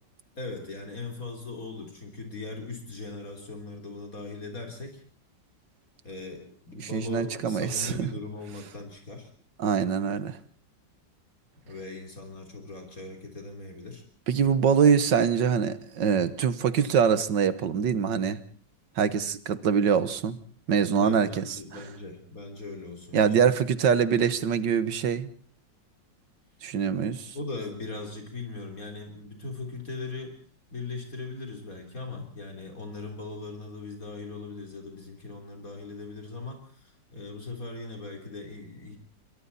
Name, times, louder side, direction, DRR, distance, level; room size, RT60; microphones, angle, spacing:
voice 1, 0.4-5.0 6.0-9.3 11.7-14.0 21.0-23.3 27.3-30.4 30.7-39.0, left 3 dB, 50° left, 3 dB, 4.1 m, -39 dB
voice 2, 6.9-8.1 9.6-10.4 14.3-18.4 19.0-20.4 20.7-21.4 21.7-21.8 23.1-25.3 26.6-27.4, right 7 dB, 75° right, 13 dB, 2.0 m, -24 dB
28.0 x 23.0 x 4.2 m, 0.43 s
omnidirectional pair, 2.0 m